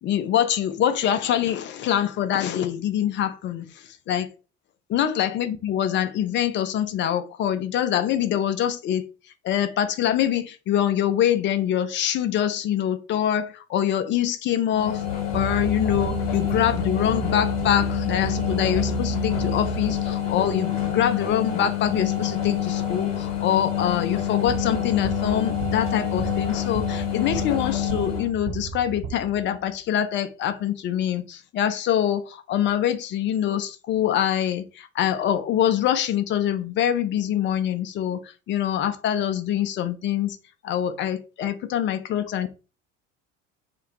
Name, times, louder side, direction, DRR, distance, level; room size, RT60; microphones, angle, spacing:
voice 1, 0.0-4.3 4.9-9.1 9.4-15.0 15.3-40.4 40.6-42.5, left 10 dB, 30° left, 0.4 m, -24 dB
sound 1, 14.7-28.3, left 10 dB, 70° left, 0.9 m, -27 dB
sound 2, 15.3-20.4 24.5-29.7, right 5 dB, 35° right, 0.6 m, -33 dB
2.4 x 2.2 x 2.9 m
figure-of-eight pair, 60°, 37 cm